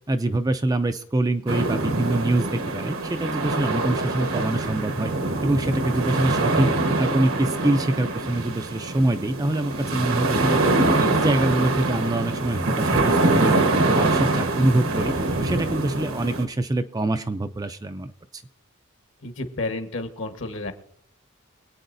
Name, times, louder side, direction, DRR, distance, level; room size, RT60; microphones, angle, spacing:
voice 1, 0.1-5.1 5.4-6.7 7.0-10.6 10.9-13.5 13.9-15.1 15.4-18.4, right 2 dB, 15° right, 9 dB, 0.4 m, -25 dB
sound 1, 1.5-16.5, right 2 dB, 75° right, 1.2 m, -24 dB
voice 2, 19.2-20.7, left 2 dB, 60° left, 7 dB, 1.3 m, -31 dB
24.0 x 8.8 x 2.6 m, 0.68 s
head